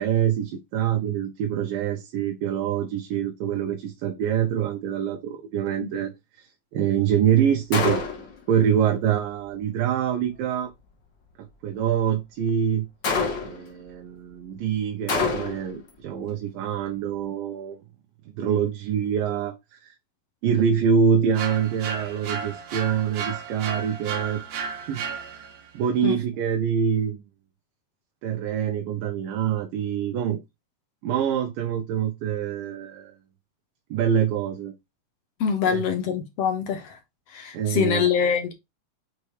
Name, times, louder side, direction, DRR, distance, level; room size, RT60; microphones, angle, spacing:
voice 1, 0.0-8.0 8.5-10.7 11.6-12.9 13.4-17.8 18.3-19.9 20.4-24.4 24.9-25.3 25.7-27.2 28.2-30.4 31.0-33.2 33.9-34.7 35.6-35.8 37.5-38.1, right 8 dB, 80° right, 2.5 m, -25 dB
Gunshot gunfire, 7.7-8.4 13.0-13.7 15.1-15.8, left 4 dB, 45° left, 1.5 m, -26 dB
sound 1, 21.4-25.7, right 6 dB, 60° right, 1.9 m, -33 dB
voice 2, 35.4-37.0 37.3-38.5, left 7 dB, 60° left, 1.7 m, -24 dB
6.6 x 3.5 x 4.6 m
omnidirectional pair, 4.1 m